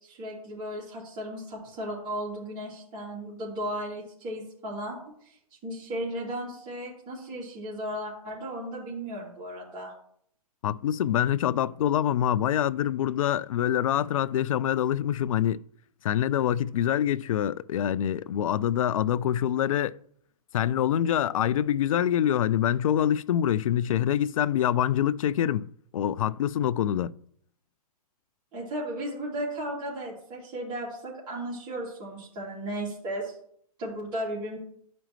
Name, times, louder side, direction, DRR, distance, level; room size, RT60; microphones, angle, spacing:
voice 1, 0.0-5.4 5.6-9.9 28.5-33.3 33.8-34.6, right 1 dB, 25° right, 3.1 m, -35 dB
voice 2, 10.6-15.6 16.0-20.0 20.5-27.1, left 10 dB, 60° left, 0.4 m, -25 dB
12.0 x 5.1 x 3.1 m
hypercardioid pair, 140°, 20 cm